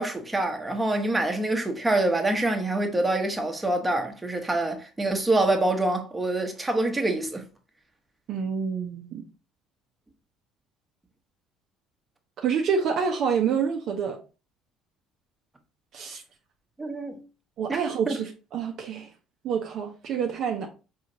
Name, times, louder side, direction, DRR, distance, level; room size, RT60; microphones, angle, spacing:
voice 1, 0.0-7.4 16.8-17.2 17.7-17.8 18.1-18.2, right 2 dB, 15° right, 0.9 m, -26 dB
voice 2, 8.3-9.2 12.4-14.2 15.9-16.2 17.6-19.1 19.4-20.7, right 6 dB, 50° right, 0.5 m, -27 dB
4.9 x 2.8 x 2.6 m
figure-of-eight pair, 55°, 0 cm